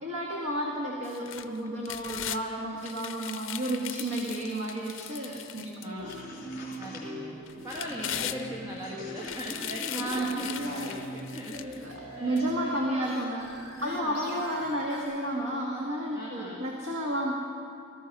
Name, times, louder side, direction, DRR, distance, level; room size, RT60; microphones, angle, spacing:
voice 1, 0.0-6.1 9.9-11.0 11.6-11.9 12.2-13.5 13.8-17.3, right 1 dB, 80° right, -2 dB, 1.8 m, -32 dB
sound 1, 1.0-2.4 2.8-6.2 6.7-6.8 7.5-8.8 9.2-11.8 12.4-12.5, left 11 dB, 65° left, 0.6 m, -39 dB
voice 2, 5.8-6.2 6.8-7.4 7.6-11.8 12.1-13.3 13.7-14.4 16.1-16.7, equal, 15° right, -4 dB, 1.6 m, -40 dB
sound 2, 5.9-7.2 7.7-8.1 8.8-10.1 10.4-10.8, left 3 dB, 45° left, 3.1 m, -50 dB
sound 3, 6.0-15.0, right 1 dB, 50° right, 4.9 m, -42 dB
18.5 x 14.0 x 5.4 m, 2.7 s
head